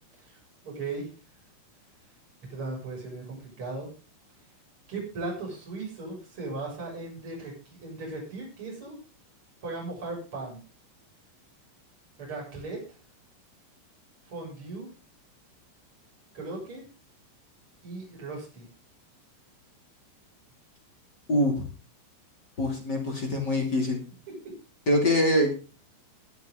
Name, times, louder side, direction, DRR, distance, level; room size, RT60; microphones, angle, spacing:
voice 1, 0.6-1.1 2.5-3.9 4.9-9.0 9.6-10.6 12.2-12.8 14.2-14.9 16.3-16.8 17.8-18.7 24.3-24.4, right 3 dB, 25° right, -3 dB, 7.3 m, -37 dB
voice 2, 22.6-24.0 24.9-25.5, left 1 dB, 30° left, 1 dB, 2.2 m, -24 dB
21.0 x 8.2 x 3.9 m, 0.34 s
omnidirectional pair, 5.9 m